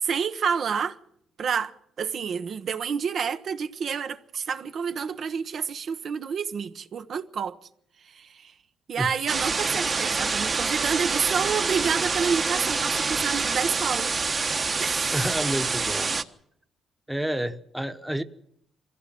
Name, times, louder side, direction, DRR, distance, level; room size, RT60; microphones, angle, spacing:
voice 1, 0.0-1.0 1.4-7.6 8.0-8.5 8.9-14.1 14.8-15.1, right 6 dB, 55° right, 0.9 m, -29 dB
sound 1, 9.3-16.2, right 4 dB, 35° right, 1.2 m, -26 dB
voice 2, 15.1-16.1 17.1-18.2, right 1 dB, 5° right, 1.1 m, -29 dB
23.0 x 16.0 x 7.6 m
cardioid pair, 90°, 0 cm